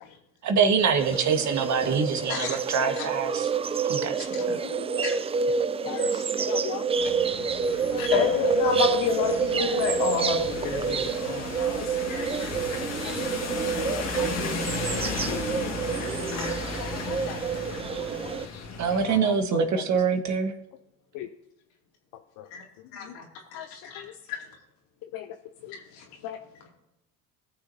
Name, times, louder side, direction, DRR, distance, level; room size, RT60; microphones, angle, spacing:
voice 1, 0.4-3.5 3.9-4.1 4.5-4.6 18.8-20.5, right 6 dB, 45° right, 5 dB, 1.5 m, -24 dB
sound 1, 1.0-18.5, right 5 dB, 15° right, 0.3 m, -28 dB
voice 2, 4.3-4.8 5.8-6.9 7.9-8.1 11.8-12.5 13.0-13.2 13.6-14.3 14.9-15.4 16.3-17.4 17.9-18.1 18.9-19.8 21.1-21.3 22.4-22.5 23.0-23.1 23.5-24.1 25.1-25.3 25.6-25.7 26.2-26.4, left 11 dB, 60° left, 8 dB, 0.7 m, -39 dB
sound 2, 7.0-19.2, left 4 dB, 45° left, 1.9 m, -35 dB
voice 3, 8.0-12.3 22.5-22.6 22.9-23.2 23.5-24.4 25.7-26.0, left 5 dB, 75° left, -1 dB, 2.7 m, -29 dB
18.0 x 6.6 x 2.8 m, 0.90 s
hypercardioid pair, 80°, 38 cm